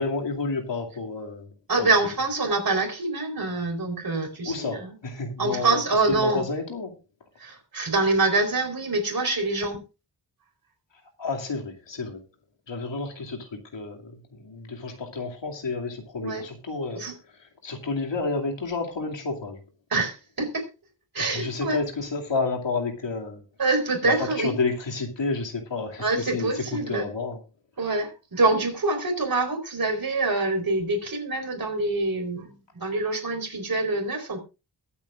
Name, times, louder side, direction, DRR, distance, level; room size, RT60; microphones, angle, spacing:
voice 1, 0.0-1.5 1.8-1.9 4.4-5.8 6.1-6.9 11.2-12.2 12.7-17.0 17.6-19.6 21.2-23.4 24.4-27.4, left 3 dB, 80° left, 2 dB, 2.6 m, -30 dB
voice 2, 1.7-4.9 5.4-6.5 7.4-9.8 16.2-16.4 16.9-17.1 19.9-20.6 21.1-21.8 23.6-24.6 26.0-27.0 27.8-32.5 32.8-34.4, right 2 dB, 50° right, 4 dB, 4.2 m, -25 dB
22.0 x 8.7 x 2.5 m, 0.30 s
wide cardioid pair, 120°, 43 cm